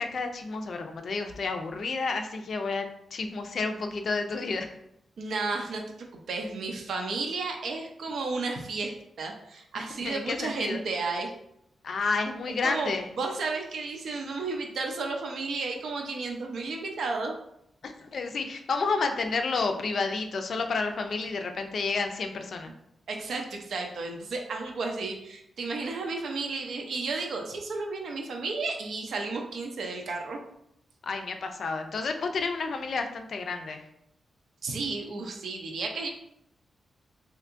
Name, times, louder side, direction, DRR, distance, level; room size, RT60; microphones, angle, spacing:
voice 1, 0.0-2.9 3.1-4.7 10.0-10.8 11.8-13.1 17.8-22.7 31.0-33.8, left 4 dB, 55° left, 6 dB, 0.4 m, -30 dB
voice 2, 5.2-5.8 6.1-11.3 12.6-12.9 13.2-17.4 23.1-30.4 34.6-36.1, right 3 dB, 70° right, 2 dB, 0.5 m, -33 dB
3.4 x 2.8 x 2.5 m, 0.77 s
wide cardioid pair, 140°, 0 cm